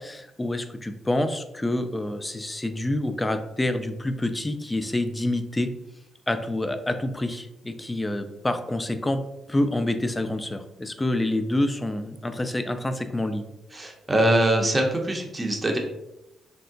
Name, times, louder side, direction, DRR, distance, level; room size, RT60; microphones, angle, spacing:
voice 1, 0.0-5.7 6.3-9.2 9.5-13.5, left 1 dB, 20° left, 8 dB, 0.3 m, -27 dB
voice 2, 13.7-15.8, right 1 dB, 25° right, 2 dB, 0.6 m, -23 dB
3.4 x 2.1 x 2.6 m, 0.89 s
hypercardioid pair, 45°, 0 cm